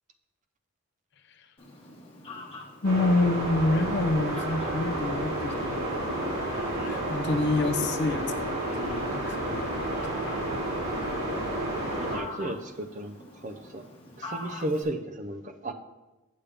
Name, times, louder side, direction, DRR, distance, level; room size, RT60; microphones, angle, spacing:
Fowl, 1.6-14.8, left 1 dB, 25° left, 1.3 m, -46 dB
voice 1, 2.8-10.3, left 2 dB, 50° left, 8 dB, 0.6 m, -28 dB
sound 1, 2.8-12.2, right 1 dB, 85° right, 2.8 m, -31 dB
voice 2, 11.9-13.2 13.4-13.9 14.2-15.7, right 1 dB, 35° right, 7 dB, 0.5 m, -34 dB
8.4 x 7.1 x 3.4 m, 1.1 s
head